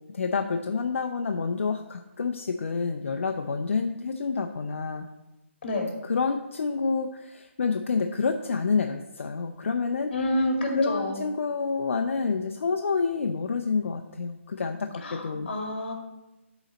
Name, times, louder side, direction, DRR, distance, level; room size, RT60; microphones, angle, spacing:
voice 1, 0.1-5.1 6.0-10.1 10.7-15.5, left 5 dB, 70° left, 4 dB, 0.5 m, -28 dB
voice 2, 10.1-11.2 15.0-15.9, left 1 dB, 50° left, 2 dB, 2.0 m, -28 dB
11.5 x 4.0 x 4.1 m, 0.99 s
hypercardioid pair, 155°, 7 cm